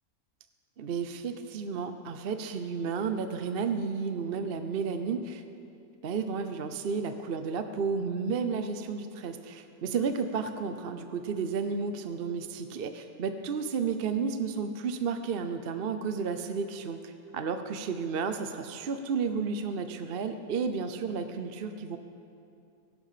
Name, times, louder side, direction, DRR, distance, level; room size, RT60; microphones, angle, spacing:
voice 1, 0.8-5.4 6.0-22.0, right 5 dB, 50° right, 8 dB, 0.8 m, -32 dB
21.5 x 11.5 x 5.0 m, 2.5 s
omnidirectional pair, 1.5 m